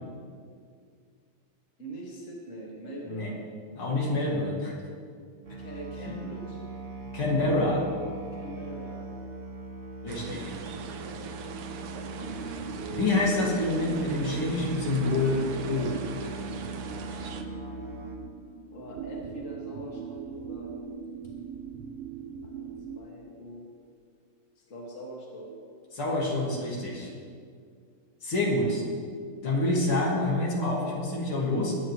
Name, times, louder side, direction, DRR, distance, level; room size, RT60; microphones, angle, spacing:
voice 1, 1.8-3.4 5.6-6.6 8.3-9.0 10.8-11.3 11.9-12.5 17.7-18.0 18.7-20.8 22.4-22.7 23.0-23.7 24.6-25.5, right 1 dB, 35° left, -3 dB, 2.5 m, -43 dB
voice 2, 3.8-4.7 6.0-6.1 7.1-7.8 10.0-10.4 12.9-16.0 25.9-27.1 28.2-28.8 29.4-31.7, left 2 dB, 75° left, -4 dB, 3.1 m, -27 dB
Musical instrument, 5.4-18.2, right 2 dB, 40° right, 1.7 m, -40 dB
sound 1, 10.1-17.4, right 6 dB, 65° right, 1.2 m, -41 dB
sound 2, 12.2-23.0, right 6 dB, 80° right, 1.6 m, -41 dB
21.5 x 9.6 x 3.2 m, 2.1 s
omnidirectional pair, 2.4 m